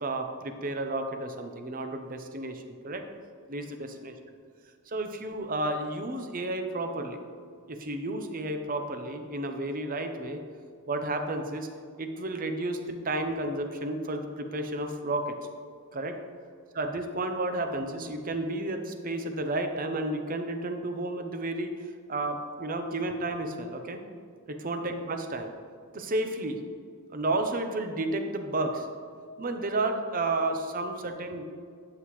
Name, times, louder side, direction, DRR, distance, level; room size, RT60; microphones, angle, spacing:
voice 1, 0.0-3.0 3.5-4.1 4.9-7.2 7.7-10.4 10.9-11.7 12.0-15.4 15.9-16.2 16.7-21.7 22.1-24.0 24.5-25.5 25.9-26.6 27.1-28.9 29.4-31.4, right 2 dB, 40° right, 6 dB, 0.8 m, -32 dB
12.0 x 7.7 x 3.2 m, 2.1 s
head